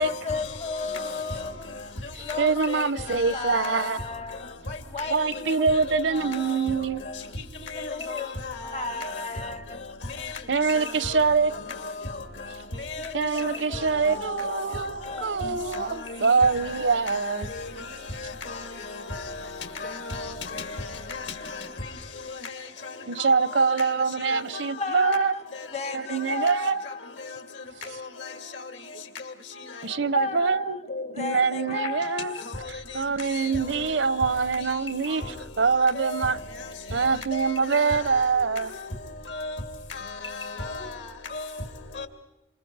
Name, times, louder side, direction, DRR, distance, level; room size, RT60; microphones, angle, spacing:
voice 1, 0.0-1.8 2.2-4.5 4.9-7.1 7.6-8.3 8.6-9.8 13.0-16.2 24.8-27.0 30.1-30.8 31.1-32.5, left 3 dB, 35° left, 0.8 m, -35 dB
voice 2, 2.4-4.0 5.1-7.0 10.5-11.5 13.1-17.5 23.1-25.4 25.9-26.8 29.8-30.8 31.2-32.3 32.7-35.2 35.6-36.4 36.9-38.7, right 5 dB, 75° right, 0.7 m, -24 dB
voice 3, 7.8-8.2 8.6-9.1 10.2-10.3 17.5-17.6 18.5-18.6 18.9-19.2 19.8-20.7 21.1-21.2 30.9-31.1 31.6-31.7 39.3-39.5 40.6-40.9 41.3-41.4 42.0-42.1, left 3 dB, 75° left, 2.8 m, -34 dB
27.5 x 27.5 x 4.8 m
head